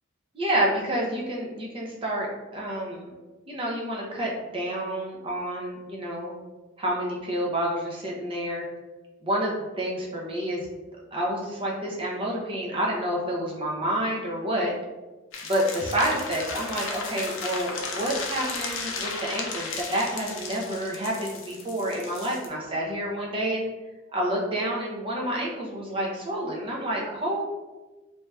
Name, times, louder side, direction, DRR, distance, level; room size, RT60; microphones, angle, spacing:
voice 1, 0.3-2.3 2.5-3.1 3.5-6.3 6.8-8.7 9.2-9.5 9.8-10.7 11.1-14.7 15.4-23.7 24.1-27.4, right 1 dB, 25° right, -3 dB, 0.6 m, -29 dB
sound 1, 15.3-22.5, left 4 dB, 70° left, 0.5 m, -35 dB
3.3 x 2.7 x 2.2 m, 1.2 s
head